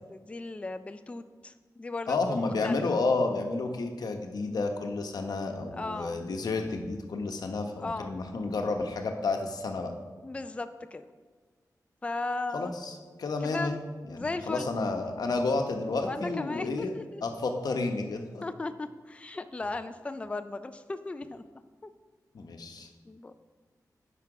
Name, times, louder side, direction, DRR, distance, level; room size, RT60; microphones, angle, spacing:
voice 1, 0.0-2.8 5.8-6.2 7.8-8.1 10.2-11.0 12.0-12.7 13.4-13.8 14.1-14.7 16.0-17.2 18.4-21.4 21.8-21.9 23.0-23.3, left 3 dB, 20° left, 10 dB, 0.3 m, -36 dB
voice 2, 2.1-9.9 12.5-13.8 14.1-16.9 17.2-18.4 22.3-22.9, left 3 dB, 70° left, 4 dB, 0.9 m, -31 dB
9.8 x 5.9 x 4.8 m, 1.4 s
wide cardioid pair, 155°, 7 cm